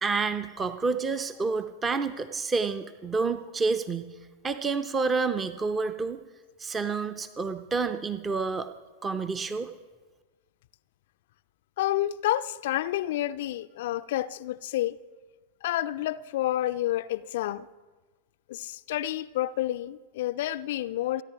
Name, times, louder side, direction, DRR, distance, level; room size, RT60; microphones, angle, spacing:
voice 1, 0.0-4.1 4.4-6.2 6.6-8.7 9.0-9.7, right 4 dB, 20° right, 0.6 m, -29 dB
voice 2, 11.8-15.0 15.6-17.7 18.5-21.2, left 14 dB, 55° left, 0.4 m, -29 dB
30.0 x 10.0 x 3.0 m
figure-of-eight pair, 90°, 0 cm